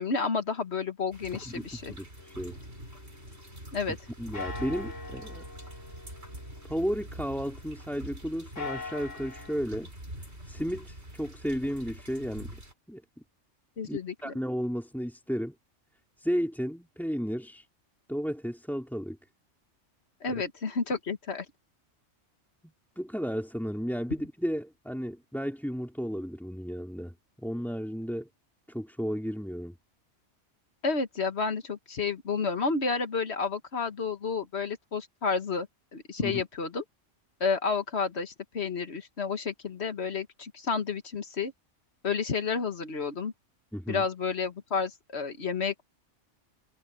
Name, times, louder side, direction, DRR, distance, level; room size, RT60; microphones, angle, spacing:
voice 1, 0.0-1.9 3.7-4.0 13.8-14.3 20.2-21.5 30.8-35.7 35.9-36.8 37.4-41.5 42.0-43.3 43.9-45.8, left 5 dB, 60° left, 1.7 m, -31 dB
sound 1, 1.1-12.7, right 1 dB, 60° right, 7.0 m, -45 dB
voice 2, 1.4-2.6 4.2-5.4 6.7-9.9 10.5-12.6 12.9-13.0 13.8-15.5 16.2-17.7 18.1-19.2 20.3-20.4 23.0-28.3 28.7-29.8 36.2-36.4 43.7-44.0, equal, ahead, 3.1 m, -33 dB
sound 2, 2.2-3.9 4.3-7.9 8.4-9.6, left 4 dB, 90° left, 2.2 m, -43 dB
omnidirectional pair, 1.2 m